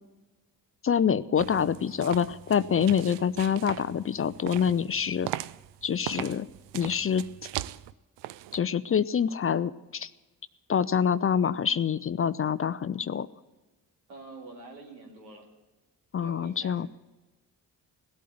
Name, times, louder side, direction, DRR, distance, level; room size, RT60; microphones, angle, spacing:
voice 1, 0.8-5.3 5.8-6.5 6.7-7.2 8.5-10.1 10.7-13.3 16.1-16.9, left 7 dB, 25° left, 16 dB, 0.5 m, -26 dB
sound 1, 1.4-8.6, right 15 dB, 60° right, 0.6 m, -39 dB
voice 2, 14.1-15.5 16.2-16.9, right 3 dB, 90° right, 0 dB, 2.3 m, -46 dB
17.5 x 8.4 x 9.2 m, 1.1 s
hypercardioid pair, 40°, 50 cm